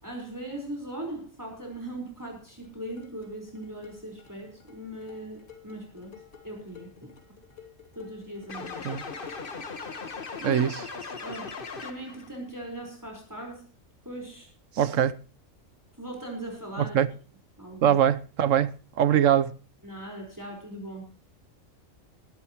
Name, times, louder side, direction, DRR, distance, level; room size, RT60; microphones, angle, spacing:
voice 1, 0.0-6.1 6.4-7.1 7.9-8.9 10.4-10.6 11.2-11.5 11.8-13.6 14.0-14.5 16.0-17.0 17.6-18.0 19.1-19.2 19.8-21.1, right 1 dB, 15° right, 4.5 m, -39 dB
sound 1, 2.6-9.6, left 8 dB, 70° left, 3.1 m, -52 dB
sound 2, 8.5-12.3, left 4 dB, 45° left, 1.5 m, -38 dB
voice 2, 10.4-10.8 14.7-15.1 16.8-17.1 17.8-19.5, right 9 dB, 75° right, 1.2 m, -22 dB
20.5 x 12.0 x 3.0 m
omnidirectional pair, 1.4 m